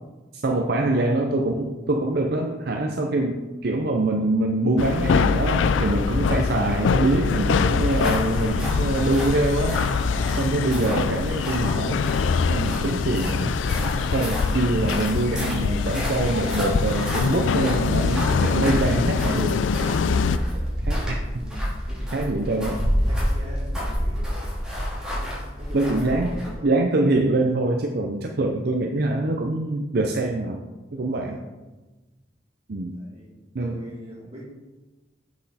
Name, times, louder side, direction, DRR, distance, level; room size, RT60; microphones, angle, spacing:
voice 1, 0.3-10.1 10.4-12.2 12.5-13.5 14.1-19.6 20.8-21.2 22.1-22.8 25.7-26.3 26.6-30.6 30.9-31.4 32.7-33.0 33.5-33.8, right 2 dB, 55° right, 2 dB, 0.6 m, -24 dB
sound 1, 4.8-20.4, left 5 dB, 90° left, 0.4 m, -24 dB
sound 2, 7.7-26.6, equal, 5° right, 2.7 m, -30 dB
voice 2, 10.0-10.4 19.9-20.7 21.0-22.1 23.0-24.5 24.9-26.7 30.9-31.4 33.0-34.5, equal, 35° right, -4 dB, 2.5 m, -43 dB
7.7 x 6.2 x 4.2 m, 1.2 s
head